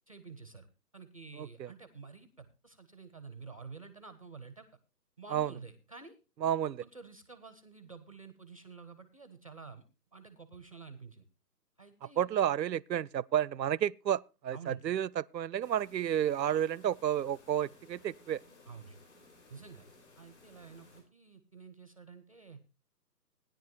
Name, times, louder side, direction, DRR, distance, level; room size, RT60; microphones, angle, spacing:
voice 1, 0.1-0.7 0.9-4.7 5.2-6.2 6.8-9.8 10.1-11.3 11.8-12.3 14.5-14.8 18.7-19.0 19.5-19.9 20.2-22.6, right 5 dB, 20° right, 0.6 m, -50 dB
voice 2, 1.4-1.7 5.3-5.5 6.4-6.8 12.2-18.4, right 10 dB, 85° right, 0.6 m, -31 dB
sound 1, 15.6-21.0, left 2 dB, 40° left, 4.8 m, -59 dB
16.5 x 10.5 x 3.0 m
figure-of-eight pair, 160°, 50 cm